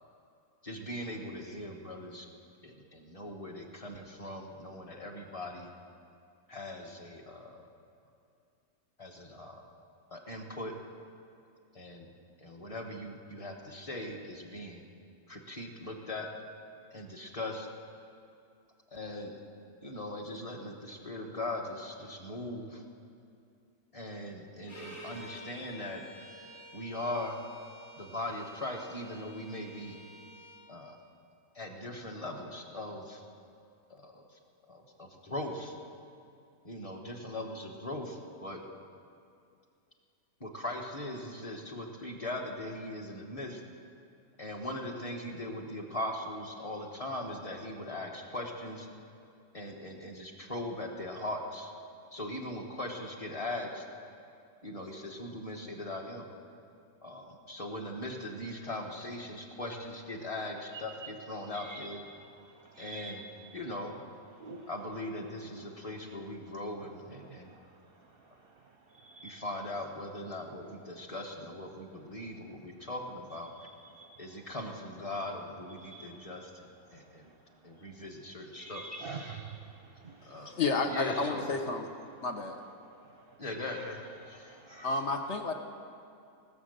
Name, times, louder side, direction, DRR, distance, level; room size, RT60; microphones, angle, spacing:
voice 1, 0.6-2.3 2.6-5.7 6.5-7.6 9.0-9.6 10.1-10.7 11.7-12.1 12.4-14.8 15.3-16.3 16.9-17.7 18.9-19.4 19.8-22.8 23.9-26.0 26.7-27.4 28.0-30.0 30.7-31.0 31.5-33.2 33.9-34.4 34.7-35.7 36.6-38.6 40.4-43.6 44.4-48.9 49.5-51.7 52.1-53.8 54.6-56.3 57.0-62.0 62.8-63.2 63.5-64.0 64.7-67.5 69.2-73.5 74.2-77.3 77.6-78.8 80.3-80.5 80.9-81.5 83.4-84.0, left 1 dB, 25° left, 1.1 m, -40 dB
Bowed string instrument, 24.7-30.6, equal, 85° left, 4.5 m, -50 dB
voice 2, 61.5-63.3 64.4-64.7 67.2-69.4 73.6-74.5 75.8-76.4 76.9-77.1 77.8-77.9 78.6-80.4 82.9-83.8 84.2-85.0, right 3 dB, 55° right, 0.7 m, -48 dB
voice 3, 80.4-81.9 82.2-82.6 84.8-85.5, left 3 dB, 60° left, 1.0 m, -31 dB
19.5 x 6.7 x 6.6 m
omnidirectional pair, 1.5 m